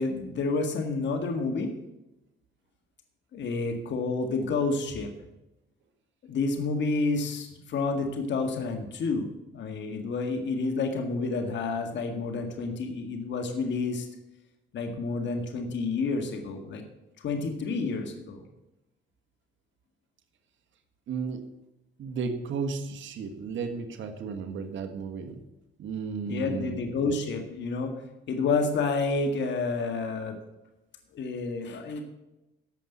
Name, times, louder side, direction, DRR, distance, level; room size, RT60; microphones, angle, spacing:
voice 1, 0.0-1.7 3.3-5.1 6.3-9.3 9.5-14.1 14.7-16.8 17.2-18.5 26.2-27.9 28.3-30.4 31.1-32.0, left 3 dB, 65° left, 4 dB, 2.0 m, -29 dB
voice 2, 21.1-21.4 22.0-25.4 25.8-26.8, right 5 dB, 70° right, 6 dB, 1.6 m, -34 dB
15.0 x 5.6 x 7.3 m, 0.96 s
cardioid pair, 90°, 20 cm